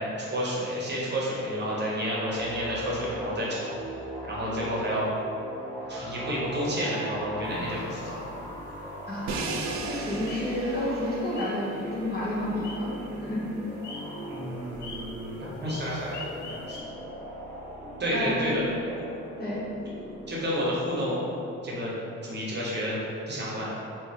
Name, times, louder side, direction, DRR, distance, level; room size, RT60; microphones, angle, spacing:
voice 1, 0.0-3.8 4.2-5.1 5.9-8.2 14.3-16.8 18.0-18.6 20.3-21.3 21.6-21.9 22.2-23.0 23.3-23.7, equal, 35° right, -6 dB, 1.0 m, -30 dB
sound 1, 2.3-20.8, equal, 10° left, 1.2 m, -40 dB
sound 2, 7.5-16.8, left 3 dB, 75° left, 0.5 m, -47 dB
voice 2, 9.1-13.4 18.1-18.5 19.4-19.6, left 1 dB, 30° left, -7 dB, 0.9 m, -31 dB
Crash cymbal, 9.3-15.2, right 3 dB, 65° right, 0.5 m, -38 dB
3.5 x 3.0 x 2.9 m, 2.8 s
cardioid pair, 90°, 30 cm